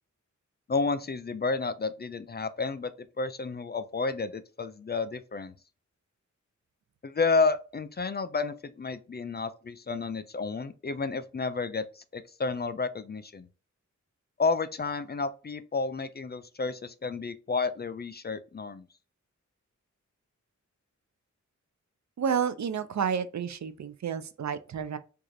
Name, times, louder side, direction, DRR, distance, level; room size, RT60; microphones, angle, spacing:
voice 1, 0.7-2.9 3.2-5.5 7.0-13.5 14.4-18.9, left 4 dB, 35° left, 0.4 m, -31 dB
voice 2, 22.2-25.0, right 7 dB, 65° right, 0.5 m, -30 dB
4.6 x 2.4 x 2.6 m
wide cardioid pair, 105°, 30 cm